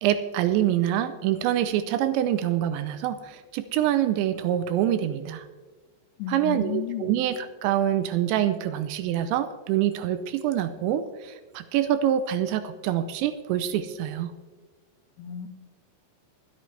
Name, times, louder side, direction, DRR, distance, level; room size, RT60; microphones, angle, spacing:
voice 1, 0.0-5.4 6.3-14.3, right 11 dB, 80° right, 11 dB, 2.7 m, -25 dB
voice 2, 6.2-7.2 15.2-15.5, left 11 dB, 85° left, 8 dB, 3.3 m, -33 dB
19.0 x 11.0 x 3.3 m, 1.3 s
omnidirectional pair, 5.4 m